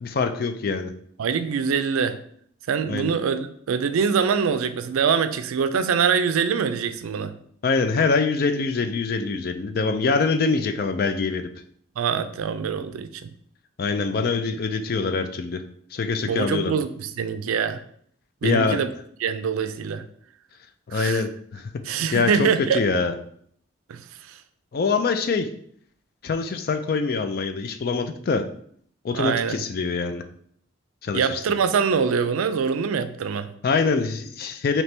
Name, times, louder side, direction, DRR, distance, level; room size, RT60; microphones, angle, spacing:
voice 1, 0.0-0.9 2.9-3.1 7.6-11.5 13.8-15.6 15.9-16.7 18.4-18.8 20.9-22.5 22.7-23.1 24.7-25.5 26.2-28.4 29.0-30.2 31.0-31.4 33.6-34.8, left 4 dB, 45° left, 8 dB, 0.3 m, -24 dB
voice 2, 1.2-2.2 2.7-7.3 12.0-13.3 16.2-17.8 18.4-18.9 19.2-20.0 20.9-21.2 21.9-22.8 23.9-24.0 24.3-24.4 29.1-29.6 31.1-33.5, right 6 dB, 85° right, 10 dB, 0.4 m, -24 dB
4.4 x 2.9 x 3.2 m, 0.63 s
head